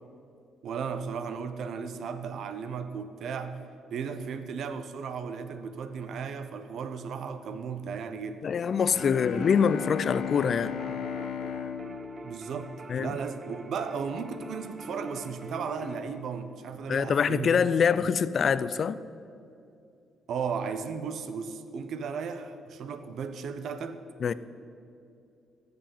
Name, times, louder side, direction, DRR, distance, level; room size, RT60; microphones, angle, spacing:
voice 1, 0.6-3.6 3.9-8.5 12.2-12.7 13.0-17.8 20.3-24.0, right 6 dB, 70° right, 1.0 m, -35 dB
voice 2, 8.4-10.7 12.9-13.2 16.9-19.0 24.2-24.3, left 6 dB, 50° left, 0.5 m, -25 dB
sound 1, 8.6-16.2, left 2 dB, ahead, 1.4 m, -49 dB
Bowed string instrument, 8.9-13.2, left 8 dB, 75° left, 1.1 m, -36 dB
sound 2, 8.9-16.0, right 4 dB, 35° right, 0.6 m, -46 dB
15.0 x 7.0 x 9.2 m
cardioid pair, 90°, 0 cm